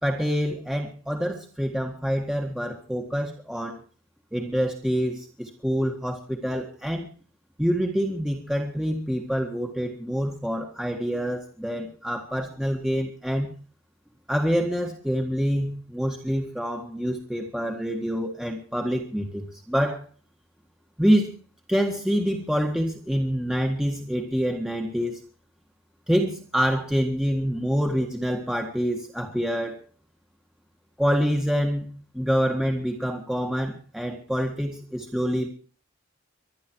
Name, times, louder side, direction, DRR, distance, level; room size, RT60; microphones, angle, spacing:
voice 1, 0.0-3.8 4.3-7.1 7.6-13.5 14.3-20.0 21.0-21.3 21.7-25.2 26.1-29.8 31.0-31.8 32.1-35.5, equal, 5° right, 1 dB, 1.7 m, -26 dB
24.0 x 11.0 x 4.6 m, 0.41 s
head